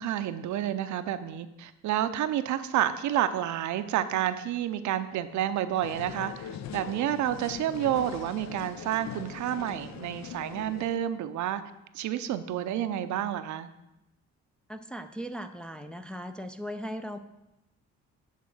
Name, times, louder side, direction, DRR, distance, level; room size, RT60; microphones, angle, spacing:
voice 1, 0.0-11.6 11.9-13.7, right 11 dB, 70° right, 11 dB, 0.6 m, -30 dB
sound 1, 5.8-11.0, left 9 dB, 65° left, 0.5 m, -41 dB
voice 2, 14.7-17.2, equal, 5° left, 6 dB, 0.4 m, -38 dB
8.3 x 3.7 x 6.0 m, 0.93 s
cardioid pair, 90°, 30 cm